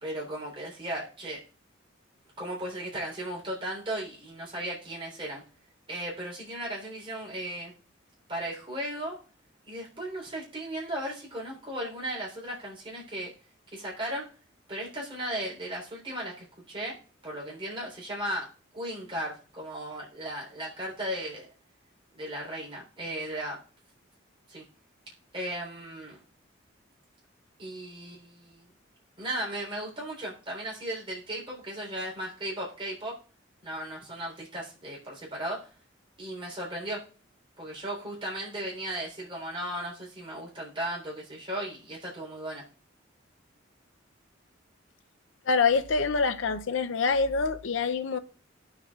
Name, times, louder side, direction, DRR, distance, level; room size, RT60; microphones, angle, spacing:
voice 1, 0.0-1.4 2.4-5.4 5.9-7.7 8.3-9.1 9.7-13.3 13.7-14.3 14.7-17.0 17.2-18.5 18.7-21.5 22.1-23.6 24.5-24.6 25.3-26.2 27.6-28.7 29.2-33.1 33.6-35.7 36.2-37.0 37.6-42.6, right 1 dB, 25° right, 3.6 m, -36 dB
voice 2, 45.5-48.2, left 4 dB, 75° left, 0.6 m, -25 dB
18.5 x 6.5 x 2.4 m
head